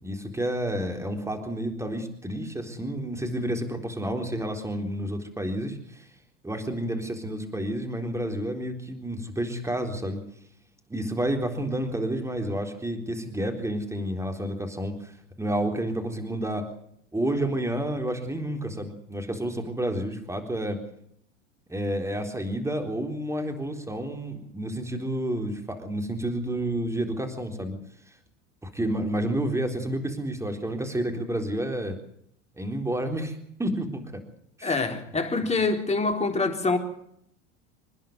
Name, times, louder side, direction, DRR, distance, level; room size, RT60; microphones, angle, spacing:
voice 1, 0.0-6.1 6.4-10.2 10.9-15.1 15.4-16.7 17.1-20.8 21.7-27.8 28.6-32.0 32.6-34.0 34.6-34.7, right 1 dB, 5° right, 3.9 m, -30 dB
voice 2, 34.6-36.8, left 3 dB, 15° left, 3.9 m, -25 dB
27.0 x 10.5 x 9.5 m
hypercardioid pair, 85°, 37 cm